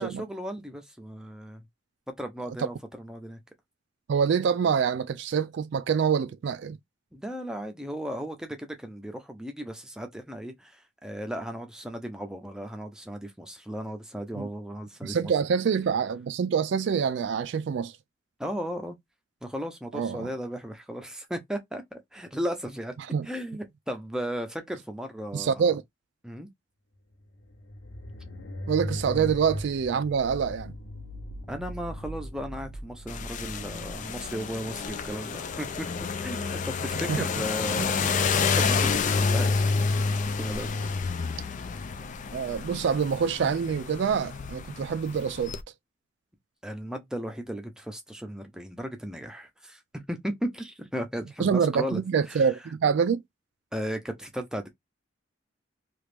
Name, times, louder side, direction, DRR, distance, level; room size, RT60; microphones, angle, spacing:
voice 1, 0.0-1.6 2.2-3.4 7.1-15.3 18.4-19.0 19.4-22.9 23.2-25.6 26.2-26.5 31.5-39.5 40.4-40.7 46.6-52.0 52.3-52.5 53.7-54.7, equal, 5° right, 0.6 m, -36 dB
voice 2, 4.1-6.8 14.4-14.5 15.0-17.9 19.9-20.3 23.1-23.3 25.3-25.8 28.7-30.7 37.1-37.2 37.8-37.9 42.3-45.5 51.4-53.2, right 6 dB, 65° right, 0.3 m, -26 dB
sound 1, 27.1-35.5, equal, 85° left, 1.0 m, -39 dB
sound 2, 33.1-45.6, left 5 dB, 40° left, 0.3 m, -29 dB
3.0 x 2.5 x 3.3 m
head